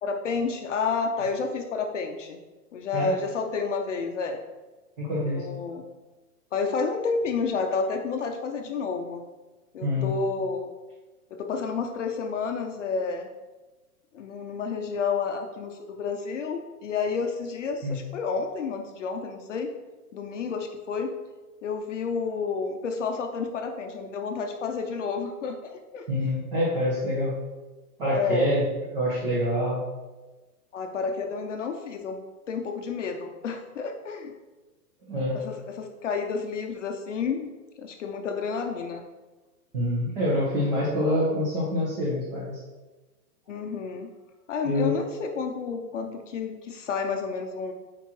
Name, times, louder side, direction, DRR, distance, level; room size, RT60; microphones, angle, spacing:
voice 1, 0.0-2.4 2.7-4.4 5.2-5.8 6.5-9.2 9.7-10.7 11.3-13.3 14.1-19.7 20.1-21.1 21.6-26.1 28.1-28.5 30.7-32.2 32.5-34.3 35.3-37.5 37.8-39.0 43.5-44.1 44.5-47.7, left 5 dB, 55° left, 4 dB, 0.6 m, -30 dB
voice 2, 5.0-5.5 9.8-10.1 17.8-18.0 26.1-27.4 28.0-29.8 35.1-35.4 39.7-42.6 44.6-44.9, left 1 dB, 35° right, -8 dB, 1.4 m, -26 dB
8.0 x 4.6 x 3.1 m, 1.2 s
hypercardioid pair, 175°, 45 cm